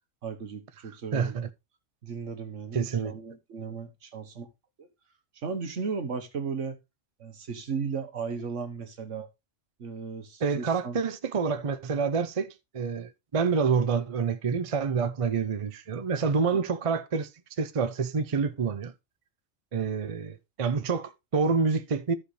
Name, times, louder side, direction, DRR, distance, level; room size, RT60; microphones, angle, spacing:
voice 1, 0.2-1.4 2.0-4.5 4.8-4.9 5.3-6.8 7.2-9.3 9.8-11.0 16.5-16.6, right 5 dB, 70° right, 1.6 m, -36 dB
voice 2, 1.1-1.5 2.7-3.1 10.4-17.3 17.6-18.9 19.7-22.1, right 5 dB, 40° right, 0.5 m, -27 dB
14.5 x 5.1 x 3.2 m
omnidirectional pair, 1.3 m